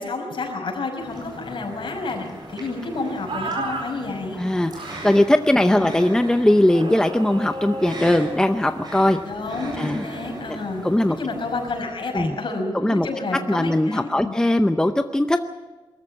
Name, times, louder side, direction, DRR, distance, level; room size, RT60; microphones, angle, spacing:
voice 1, 0.0-4.4 5.6-5.9 9.2-10.8 11.2-14.3, left 3 dB, 60° left, 1 dB, 6.0 m, -30 dB
sound 1, 1.0-11.9, right 1 dB, 50° right, 7.6 m, -38 dB
sound 2, 3.3-3.9 4.7-5.2 6.7-9.0, right 2 dB, 90° right, 4.2 m, -33 dB
voice 2, 4.4-4.7 5.0-9.2 9.8-10.0 10.8-11.2 12.1-12.4 12.7-13.1 13.5-15.4, left 1 dB, 5° left, 7 dB, 0.6 m, -19 dB
23.0 x 14.0 x 8.7 m, 1.2 s
wide cardioid pair, 170°, 9 cm